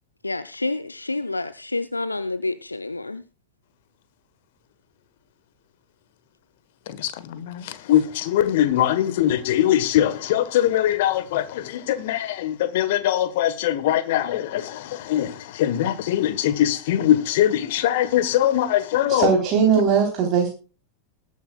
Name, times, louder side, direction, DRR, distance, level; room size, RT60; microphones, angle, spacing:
voice 1, 0.2-3.2, left 2 dB, 80° left, 0.5 m, -28 dB
voice 2, 7.0-7.6 7.9-19.3, left 12 dB, 50° left, 1.3 m, -22 dB
voice 3, 19.1-20.5, right 6 dB, 35° right, 3.5 m, -19 dB
20.5 x 9.7 x 2.3 m
figure-of-eight pair, 90°, 0 cm